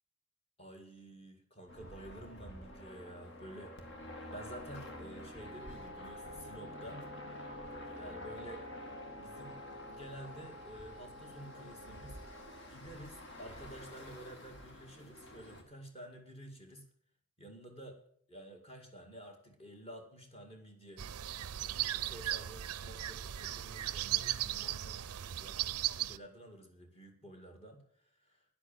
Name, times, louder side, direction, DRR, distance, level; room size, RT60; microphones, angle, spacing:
voice 1, 0.6-3.8 4.3-7.4 7.9-8.7 9.2-9.6 9.9-12.2 12.7-16.9 17.4-18.0 18.3-21.1 21.7-28.5, right 1 dB, 25° left, 3 dB, 2.0 m, -51 dB
sound 1, 1.7-15.6, left 1 dB, 55° left, 2.0 m, -49 dB
Wind instrument woodwind instrument, 5.4-12.8, left 1 dB, 20° right, 0.6 m, -52 dB
sound 2, 21.0-26.2, right 12 dB, 85° right, 0.5 m, -37 dB
10.0 x 8.2 x 9.0 m, 0.62 s
head